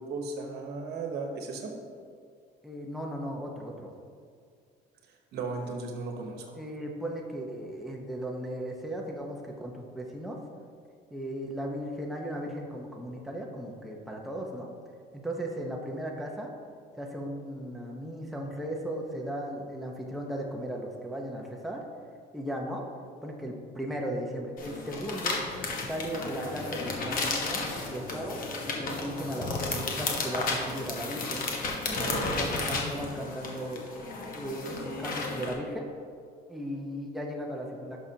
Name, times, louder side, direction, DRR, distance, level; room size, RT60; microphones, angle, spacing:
voice 1, 0.0-1.7 5.3-6.6, right 3 dB, 75° right, 3 dB, 1.1 m, -36 dB
voice 2, 2.6-3.9 6.6-10.4 11.1-14.7 15.1-16.5 17.0-21.8 22.3-22.9 23.2-25.4 25.9-31.4 31.9-33.9 34.3-35.9 36.5-38.0, equal, ahead, -1 dB, 0.9 m, -36 dB
sound 1, 24.6-35.5, left 3 dB, 55° left, 1.2 m, -33 dB
11.0 x 6.1 x 2.8 m, 2.1 s
cardioid pair, 110°, 17 cm